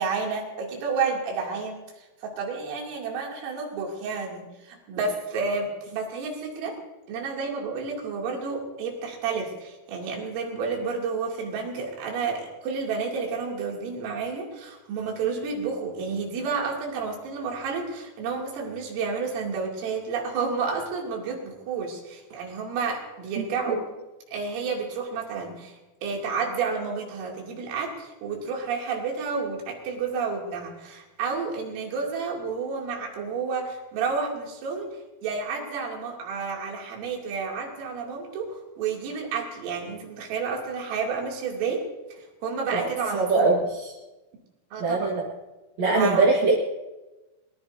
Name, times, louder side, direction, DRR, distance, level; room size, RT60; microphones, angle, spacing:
voice 1, 0.0-1.8 2.2-6.8 7.1-23.8 24.3-34.9 35.2-43.5 44.7-45.2 45.9-46.3, right 5 dB, 85° right, -1 dB, 5.3 m, -30 dB
voice 2, 43.1-43.9 44.8-45.2 45.8-46.6, right 3 dB, 65° right, -3 dB, 1.7 m, -22 dB
23.0 x 19.0 x 2.7 m, 1.1 s
omnidirectional pair, 5.8 m